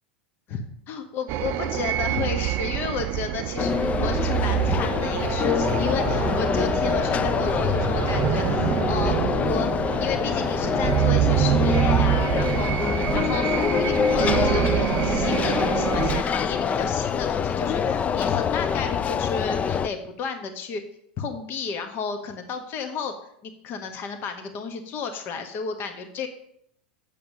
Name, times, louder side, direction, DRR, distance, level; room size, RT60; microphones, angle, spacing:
voice 1, 0.5-20.8 21.2-23.1 23.4-26.3, left 5 dB, 40° left, 7 dB, 1.3 m, -32 dB
sound 1, 1.3-16.2, right 13 dB, 45° right, 0.4 m, -26 dB
sound 2, 3.6-19.9, left 6 dB, 25° left, 0.5 m, -25 dB
8.6 x 6.9 x 6.7 m, 0.72 s
hypercardioid pair, 90°, 6 cm